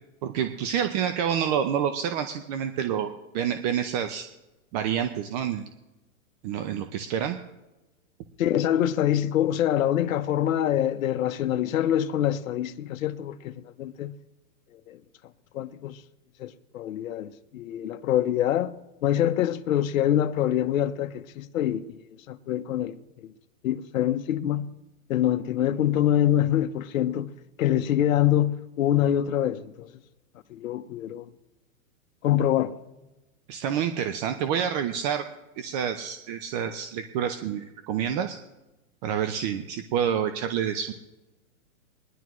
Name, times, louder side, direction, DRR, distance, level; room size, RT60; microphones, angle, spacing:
voice 1, 0.2-4.3 4.7-5.7 6.4-7.4 33.5-35.3 35.6-38.4 39.0-40.9, right 8 dB, 30° right, 0.6 m, -28 dB
voice 2, 8.4-14.2 14.9-15.0 15.5-16.0 16.4-18.7 19.0-22.0 22.3-23.3 23.6-24.7 25.1-27.3 27.6-29.9 30.5-31.3 32.2-32.8, left 11 dB, 70° left, 0.9 m, -25 dB
21.5 x 11.0 x 3.1 m
hypercardioid pair, 150°, 42 cm